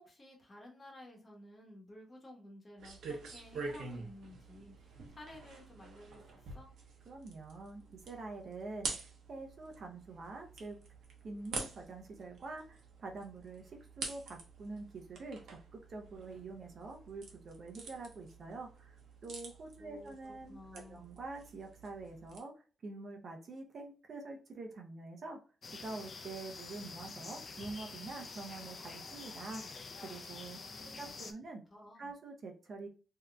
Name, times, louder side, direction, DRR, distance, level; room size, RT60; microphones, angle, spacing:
voice 1, 0.0-6.7 19.8-21.0 30.7-31.1 31.7-32.1, left 1 dB, 30° left, 0 dB, 1.1 m, -54 dB
sound 1, 2.8-22.4, right 3 dB, 90° right, 0.8 m, -47 dB
voice 2, 7.1-10.8 11.2-25.4 25.8-30.6 30.9-31.6 32.0-32.9, right 3 dB, 55° right, 3 dB, 0.7 m, -46 dB
sound 2, 25.6-31.3, left 4 dB, 45° left, 0.5 m, -47 dB
3.6 x 2.8 x 2.2 m, 0.36 s
cardioid pair, 110°, 0 cm